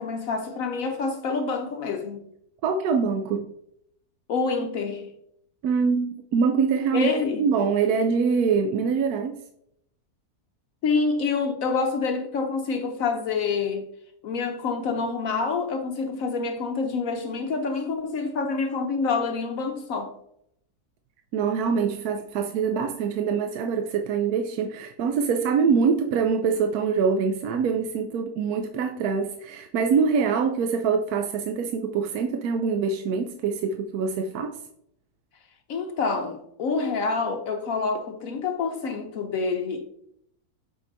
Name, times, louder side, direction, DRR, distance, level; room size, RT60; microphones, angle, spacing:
voice 1, 0.0-2.2 4.3-5.1 6.9-7.4 10.8-13.8 14.2-20.1 35.7-39.8, left 4 dB, 65° left, 1.0 m, -27 dB
voice 2, 2.6-3.5 5.6-7.1 7.4-9.4 21.3-34.5, right 5 dB, 75° right, 1.1 m, -24 dB
7.7 x 5.9 x 2.6 m
omnidirectional pair, 1.6 m